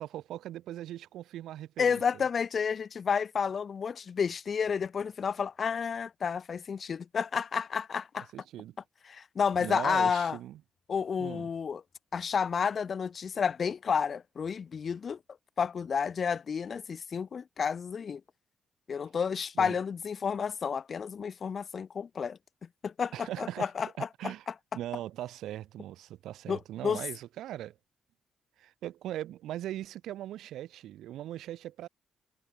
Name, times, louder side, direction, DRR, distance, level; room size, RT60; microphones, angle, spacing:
voice 1, 0.0-2.2 8.3-8.8 9.6-10.6 11.2-11.5 19.5-19.7 23.1-23.7 24.0-24.5 24.7-27.8 28.6-31.9, right 13 dB, 85° right, 6.5 m, -40 dB
voice 2, 1.8-8.3 9.1-10.4 10.9-11.8 12.1-15.2 15.6-18.2 18.9-22.4 22.8-24.3 26.5-27.0, left 6 dB, 50° left, 2.6 m, -31 dB
cardioid pair, 75°, 0 cm